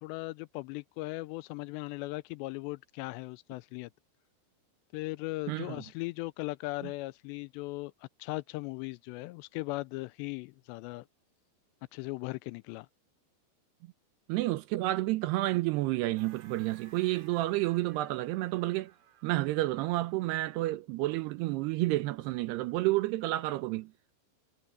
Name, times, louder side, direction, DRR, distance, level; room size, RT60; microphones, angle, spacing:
voice 1, 0.0-3.9 4.9-7.9 8.2-11.1 11.9-12.9, left 21 dB, 85° left, 2.6 m, -38 dB
voice 2, 5.5-5.8 14.3-18.9 19.2-23.9, right 18 dB, 80° right, 2.6 m, -30 dB
sound 1, 16.2-20.6, right 7 dB, 55° right, 4.1 m, -59 dB
omnidirectional pair, 5.1 m